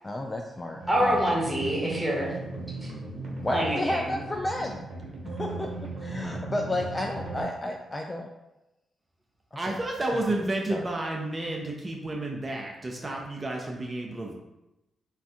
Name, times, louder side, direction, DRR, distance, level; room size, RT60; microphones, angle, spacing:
voice 1, 0.0-1.2 3.4-4.9 5.3-5.7 6.0-8.3 9.7-9.8 10.7-10.9, left 1 dB, 25° left, 2 dB, 0.3 m, -32 dB
sound 1, 0.8-7.4, right 3 dB, 65° right, 1.0 m, -37 dB
voice 2, 0.9-2.3 2.8-2.9 3.5-4.1, equal, 5° left, -5 dB, 1.3 m, -26 dB
voice 3, 9.6-14.3, right 2 dB, 35° right, 0 dB, 0.5 m, -31 dB
2.5 x 2.4 x 3.4 m, 0.95 s
supercardioid pair, 45°, 0 cm